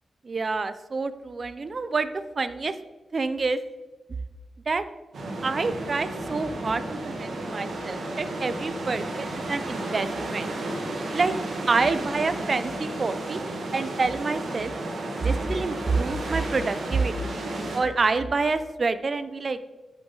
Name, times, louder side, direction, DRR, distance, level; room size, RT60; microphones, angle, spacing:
voice 1, 0.2-2.8 3.1-3.6 4.7-4.8 5.4-10.5 11.1-11.3 11.7-13.4 13.7-14.7 15.2-17.3 17.7-19.6, right 4 dB, 40° right, 12 dB, 0.5 m, -27 dB
sound 1, 5.1-17.8, right 2 dB, 80° right, 2.0 m, -33 dB
11.0 x 7.9 x 3.9 m, 1.2 s
wide cardioid pair, 160°, 0 cm